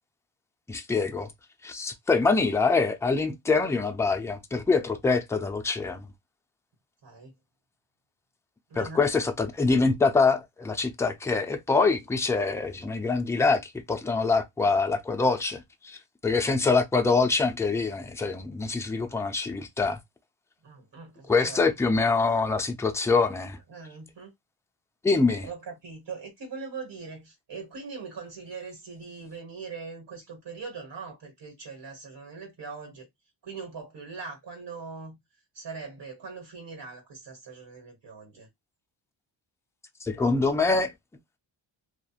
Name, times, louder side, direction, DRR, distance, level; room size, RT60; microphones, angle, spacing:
voice 1, 0.7-1.3 1.6-6.1 8.8-20.0 21.3-23.6 25.0-25.5 40.0-40.9, left 4 dB, 5° left, 0.4 m, -25 dB
voice 2, 7.0-7.3 8.7-9.0 20.6-21.6 23.7-24.3 25.4-33.1 33.4-35.2 35.5-38.5, right 5 dB, 50° right, 1.4 m, -41 dB
2.9 x 2.4 x 2.4 m
wide cardioid pair, 105°, 49 cm